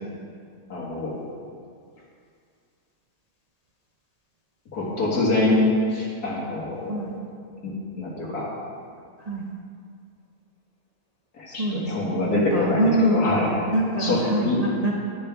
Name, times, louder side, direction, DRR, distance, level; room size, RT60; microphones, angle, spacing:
voice 1, 0.7-1.1 4.7-5.6 5.9-7.1 7.6-8.5 11.4-13.5 14.0-14.2 14.5-14.6, left 2 dB, 80° left, -5 dB, 2.3 m, -25 dB
voice 2, 9.2-9.5 11.5-14.9, right 1 dB, 45° right, -3 dB, 0.5 m, -25 dB
10.5 x 6.6 x 3.5 m, 2.2 s
omnidirectional pair, 1.6 m